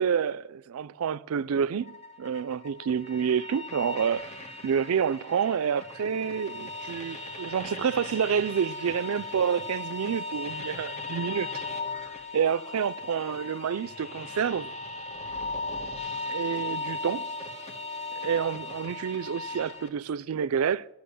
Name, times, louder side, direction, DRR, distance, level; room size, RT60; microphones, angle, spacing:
voice 1, 0.0-4.3 4.6-11.5 12.3-14.7 16.3-17.2 18.1-20.9, right 7 dB, 75° right, 0.4 m, -28 dB
sound 1, 1.8-19.9, left 3 dB, 30° left, 1.2 m, -37 dB
13.5 x 6.1 x 8.5 m
head